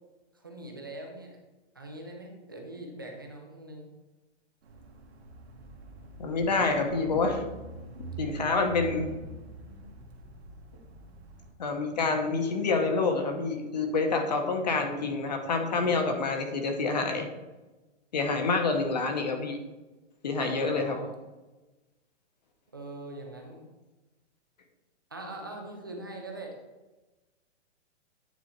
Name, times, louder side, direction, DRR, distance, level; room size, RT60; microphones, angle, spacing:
voice 1, 0.3-1.4 1.7-3.9 20.4-21.1 22.7-23.6 25.1-26.6, right 2 dB, 20° right, 1 dB, 0.5 m, -42 dB
sound 1, 4.6-11.5, right 3 dB, 60° right, 1.3 m, -44 dB
voice 2, 6.2-7.4 8.2-9.1 11.6-17.3 18.1-19.6 20.2-21.0, left 4 dB, 35° left, 5 dB, 0.8 m, -27 dB
9.2 x 4.2 x 4.2 m, 1.1 s
hypercardioid pair, 180°, 36 cm